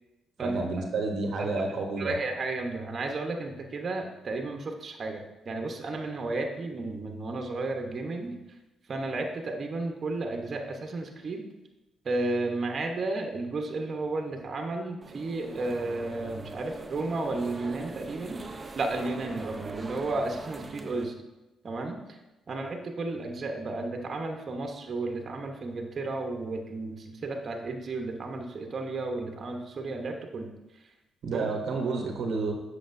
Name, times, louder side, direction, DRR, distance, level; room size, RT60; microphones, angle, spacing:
voice 1, 0.4-2.1 31.2-32.6, right 3 dB, 70° right, 2 dB, 0.8 m, -30 dB
voice 2, 2.0-8.4 8.9-11.4 12.0-18.4 18.8-21.1 21.6-22.2 22.5-30.5 31.3-31.6, right 2 dB, 45° right, 2 dB, 0.9 m, -33 dB
sound 1, 15.0-21.0, right 3 dB, 25° right, 0.6 m, -42 dB
7.6 x 6.1 x 2.6 m, 1.0 s
cardioid pair, 90°, 0 cm